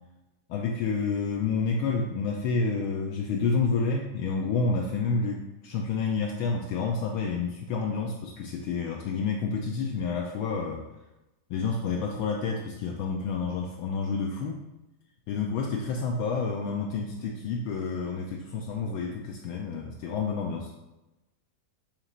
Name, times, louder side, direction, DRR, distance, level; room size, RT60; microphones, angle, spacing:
voice 1, 0.5-10.8 11.5-14.6 15.3-20.7, left 4 dB, 45° left, 0 dB, 0.4 m, -29 dB
2.9 x 2.8 x 3.8 m, 1.0 s
figure-of-eight pair, 90°, 0 cm